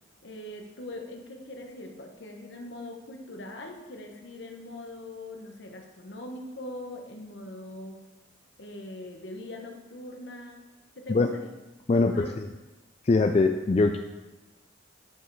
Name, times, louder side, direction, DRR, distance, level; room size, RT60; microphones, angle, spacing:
voice 1, 0.2-8.0 8.6-10.7 10.9-11.5 11.9-12.3, left 1 dB, 65° left, 3 dB, 1.2 m, -41 dB
voice 2, 11.9-12.3 13.1-14.0, left 3 dB, 30° left, 6 dB, 0.3 m, -22 dB
11.0 x 5.0 x 4.7 m, 1.1 s
head